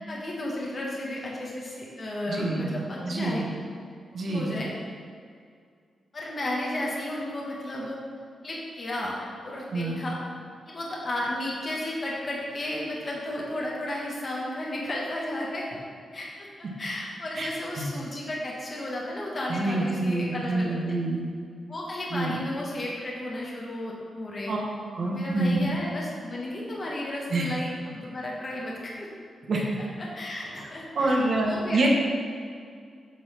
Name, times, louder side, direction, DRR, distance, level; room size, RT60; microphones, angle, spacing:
voice 1, 0.1-3.4 4.1-4.7 6.1-8.0 8.4-10.2 10.7-15.7 16.1-20.8 21.7-24.6 25.0-29.1 30.0-31.9, left 1 dB, 30° left, -4 dB, 1.3 m, -33 dB
voice 2, 2.3-2.7 3.0-3.4 4.1-4.5 9.7-10.0 17.4-17.5 19.5-21.2 22.1-22.4 24.5-24.6 24.9-25.7 27.3-27.4 29.5-29.6 30.5-30.7 30.9-31.9, right 2 dB, 45° right, -1 dB, 1.3 m, -26 dB
8.5 x 4.3 x 5.6 m, 2.2 s
wide cardioid pair, 165°, 0 cm